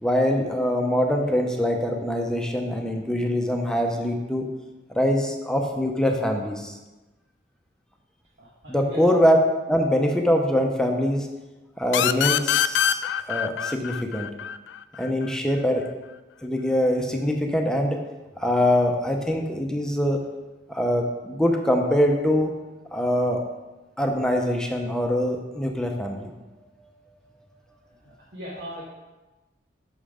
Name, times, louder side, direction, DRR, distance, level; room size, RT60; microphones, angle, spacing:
voice 1, 0.0-4.5 4.9-6.7 8.7-9.4 9.7-11.3 11.8-13.0 13.3-14.3 15.0-15.8 16.4-18.0 18.4-20.2 20.7-22.5 22.9-23.4 24.0-26.3, equal, 5° left, 2 dB, 0.6 m, -23 dB
voice 2, 8.4-9.0 28.0-28.8, equal, 70° right, -6 dB, 1.3 m, -39 dB
sound 1, 11.9-15.3, left 9 dB, 80° left, 0.3 m, -24 dB
6.3 x 5.6 x 4.9 m, 1.1 s
head